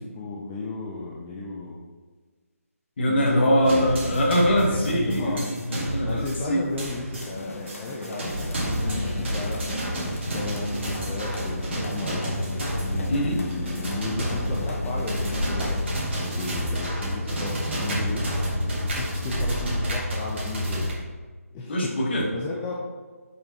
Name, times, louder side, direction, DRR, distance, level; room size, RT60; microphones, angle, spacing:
voice 1, 0.0-1.8 3.1-4.2 4.6-5.5 6.0-9.7 10.3-12.3 12.8-15.9 16.2-18.3 18.8-20.9 21.5-21.9 22.3-22.8, left 3 dB, 10° left, -4 dB, 0.3 m, -34 dB
voice 2, 3.0-6.6 13.1-13.4 21.7-22.3, equal, 45° left, -2 dB, 1.4 m, -23 dB
sound 1, 3.6-20.9, equal, 50° right, 1.8 m, -29 dB
sound 2, 7.1-16.1, left 2 dB, 65° left, 1.0 m, -38 dB
5.5 x 4.5 x 4.0 m, 1.4 s
figure-of-eight pair, 160°, 8 cm